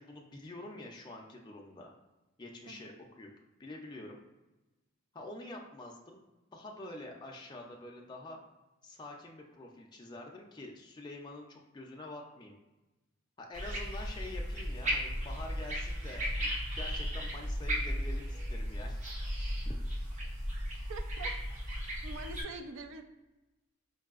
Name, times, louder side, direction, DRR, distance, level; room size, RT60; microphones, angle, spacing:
voice 1, 0.0-1.9 2.4-3.3 3.6-4.3 5.1-6.2 6.5-8.4 8.8-12.6 13.4-19.0 19.3-19.7, left 2 dB, 20° left, 0 dB, 0.4 m, -47 dB
sound 1, 13.5-22.4, equal, 35° right, 0.9 m, -35 dB
voice 2, 20.9-21.3 22.0-23.0, right 3 dB, 70° right, 6 dB, 0.4 m, -44 dB
4.6 x 2.6 x 2.4 m, 1.1 s
head